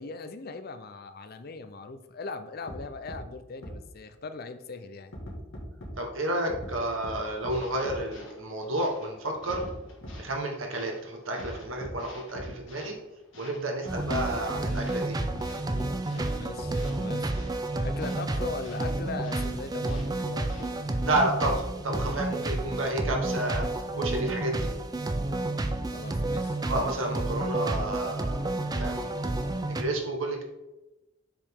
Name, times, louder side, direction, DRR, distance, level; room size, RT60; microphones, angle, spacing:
voice 1, 0.0-5.1 16.3-17.3 17.8-20.8 25.9-26.6, left 3 dB, 45° left, 10 dB, 0.5 m, -39 dB
sound 1, 2.7-2.8 3.1-3.2 3.6-3.7 5.1-5.9 6.5-6.7 7.0-7.1 7.4-7.5 7.9-8.0 9.5-9.7 10.0-10.1 11.4-11.5 11.8-11.9 12.4-12.5 13.9-14.6 15.2-15.5 15.8-15.9 16.2-16.3 16.6-16.7, equal, 85° left, 1.9 m, -40 dB
voice 2, 6.0-9.6 10.2-13.0 13.4-15.2 21.0-23.6 23.9-24.7 26.7-28.4 28.8-29.2 29.7-30.4, right 1 dB, 70° right, 1 dB, 1.3 m, -30 dB
sound 2, 7.2-21.0, left 2 dB, 70° left, 2.1 m, -52 dB
sound 3, 13.9-29.8, right 2 dB, 20° right, 0.4 m, -30 dB
7.2 x 4.9 x 3.6 m, 0.98 s
head